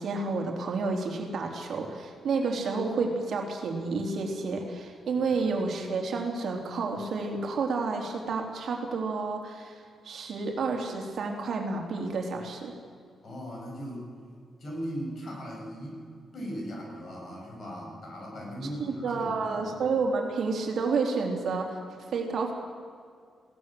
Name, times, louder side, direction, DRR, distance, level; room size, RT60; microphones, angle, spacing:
voice 1, 0.0-12.7 18.8-21.8 22.1-22.5, right 4 dB, 60° right, 1 dB, 3.5 m, -30 dB
voice 2, 13.2-14.1 14.6-16.1 16.3-19.6, equal, 50° left, -1 dB, 7.9 m, -38 dB
21.5 x 17.5 x 7.8 m, 2.2 s
wide cardioid pair, 145°, 0 cm